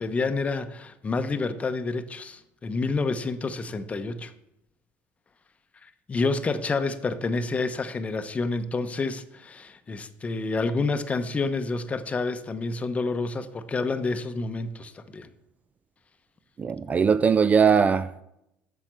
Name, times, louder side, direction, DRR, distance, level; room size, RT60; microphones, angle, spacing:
voice 1, 0.0-4.3 6.1-15.3, left 3 dB, 25° left, 0.8 m, -28 dB
voice 2, 16.6-18.2, right 6 dB, 25° right, 0.4 m, -20 dB
8.6 x 6.5 x 6.2 m
supercardioid pair, 105°, 6 cm